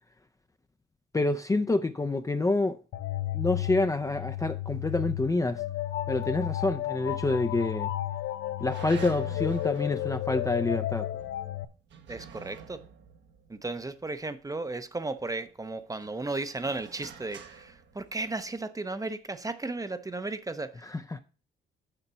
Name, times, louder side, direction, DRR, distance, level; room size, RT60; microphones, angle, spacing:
voice 1, 1.1-2.8 3.3-5.6 6.1-7.9 8.6-11.1 20.8-21.2, left 2 dB, 15° left, 0.5 m, -27 dB
sound 1, 2.9-11.6, left 14 dB, 75° left, 0.5 m, -33 dB
sound 2, 6.7-7.5 7.8-7.9 8.6-14.8 15.2-18.6, right 7 dB, 65° right, 1.1 m, -49 dB
voice 2, 12.1-12.8 13.5-20.8, right 2 dB, 15° right, 0.7 m, -35 dB
6.8 x 5.9 x 5.6 m
cardioid pair, 90°, 20 cm